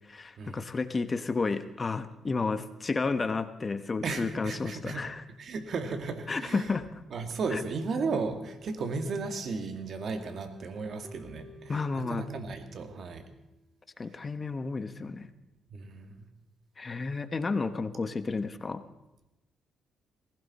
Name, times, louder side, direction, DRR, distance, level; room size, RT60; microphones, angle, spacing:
voice 1, 0.1-5.2 6.3-6.8 7.5-7.6 11.7-12.2 14.0-15.3 16.8-18.8, left 4 dB, 30° left, 10 dB, 1.1 m, -31 dB
voice 2, 4.0-5.0 5.4-6.7 7.1-13.2 15.7-16.3, right 4 dB, 55° right, 7 dB, 2.0 m, -35 dB
sound 1, 9.0-13.7, equal, 20° right, 4.1 m, -53 dB
19.0 x 16.5 x 4.3 m, 0.96 s
cardioid pair, 90°, 0 cm